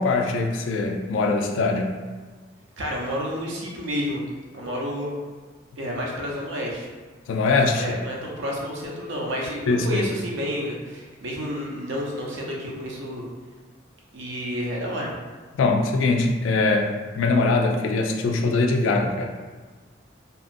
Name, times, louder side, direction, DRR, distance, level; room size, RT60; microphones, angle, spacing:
voice 1, 0.0-1.9 7.3-7.9 9.7-10.0 15.6-19.3, left 3 dB, 75° left, 3 dB, 0.3 m, -22 dB
voice 2, 2.8-4.2 4.5-5.1 5.8-6.9 7.7-13.3 14.1-15.1, equal, 70° right, -2 dB, 0.6 m, -30 dB
2.7 x 2.4 x 2.5 m, 1.4 s
head